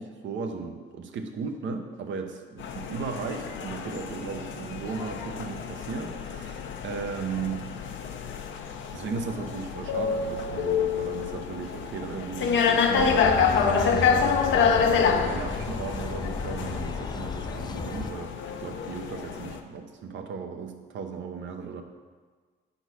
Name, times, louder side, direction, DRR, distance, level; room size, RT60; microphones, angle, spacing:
voice 1, 0.0-7.6 8.9-21.8, right 5 dB, 70° right, 5 dB, 0.9 m, -36 dB
sound 1, 2.6-19.6, left 6 dB, 70° left, 0.7 m, -28 dB
sound 2, 13.0-18.1, left 4 dB, 20° left, 0.4 m, -34 dB
8.1 x 3.9 x 6.3 m, 1.5 s
cardioid pair, 90°, 20 cm